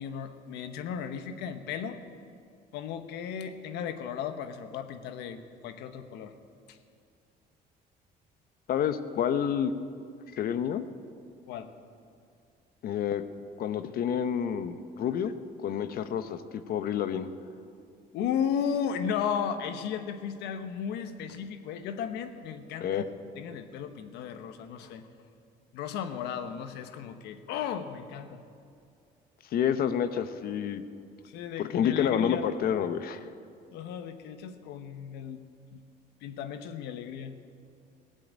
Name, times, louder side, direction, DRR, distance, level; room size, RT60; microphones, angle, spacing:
voice 1, 0.0-2.0 2.7-6.3 6.7-6.8 11.5-11.7 18.1-23.1 23.4-25.1 25.7-28.4 31.2-32.5 33.7-35.8 36.2-37.3, left 8 dB, 85° left, 9 dB, 1.1 m, -35 dB
voice 2, 8.7-9.7 10.3-10.8 12.8-13.2 13.6-15.3 15.6-16.4 16.7-17.3 22.8-23.0 29.5-30.8 31.6-33.3, left 8 dB, 60° left, 11 dB, 0.9 m, -28 dB
17.0 x 7.8 x 8.8 m, 2.4 s
cardioid pair, 110°, 17 cm